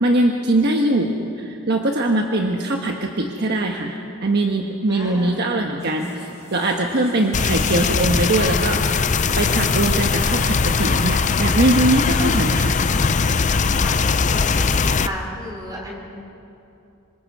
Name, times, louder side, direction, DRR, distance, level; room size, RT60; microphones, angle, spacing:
voice 1, 0.0-6.1 6.5-12.8, right 1 dB, 50° right, 2 dB, 1.2 m, -21 dB
voice 2, 4.9-5.4 13.8-14.0 14.3-16.0, equal, 20° right, -2 dB, 4.7 m, -33 dB
sound 1, 5.8-13.1, left 2 dB, 15° left, 6.7 m, -44 dB
sound 2, 7.3-15.1, left 4 dB, 35° left, 0.5 m, -20 dB
26.0 x 25.5 x 4.8 m, 2.8 s
head